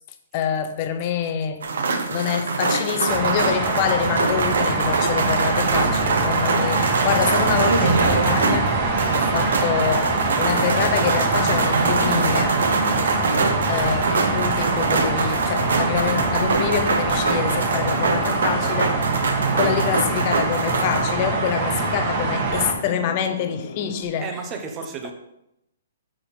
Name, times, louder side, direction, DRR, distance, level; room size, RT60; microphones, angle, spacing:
voice 1, 0.3-1.6 2.1-8.7 9.1-12.6 13.7-19.0 19.5-24.3, left 8 dB, 30° left, 0.8 m, -26 dB
sound 1, 1.6-21.1, right 4 dB, 85° right, 1.3 m, -24 dB
sound 2, 3.0-22.7, right 3 dB, 35° right, 1.6 m, -24 dB
sound 3, 16.1-24.0, left 4 dB, 75° left, 1.7 m, -37 dB
voice 2, 24.2-25.1, right 5 dB, 15° right, 1.1 m, -33 dB
7.6 x 6.6 x 5.5 m
hypercardioid pair, 170°, 0 cm